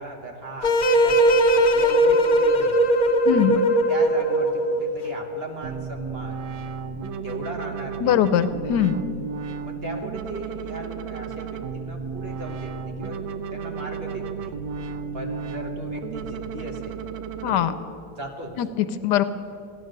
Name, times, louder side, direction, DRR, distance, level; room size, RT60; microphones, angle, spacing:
voice 1, 0.0-2.9 3.3-3.6 3.9-6.4 7.2-8.2 9.6-13.2 13.5-14.6 15.1-17.0 17.4-17.8 18.1-18.5, right 1 dB, 40° right, 2 dB, 1.3 m, -37 dB
sound 1, 0.6-4.9, right 1 dB, 50° left, 0.6 m, -19 dB
voice 2, 3.2-3.6 8.0-9.0 17.4-17.7 18.6-19.2, left 10 dB, 75° left, 12 dB, 1.1 m, -21 dB
sound 2, 5.6-17.6, right 5 dB, 75° right, 1.3 m, -33 dB
15.0 x 10.5 x 6.5 m, 2.7 s
omnidirectional pair, 1.9 m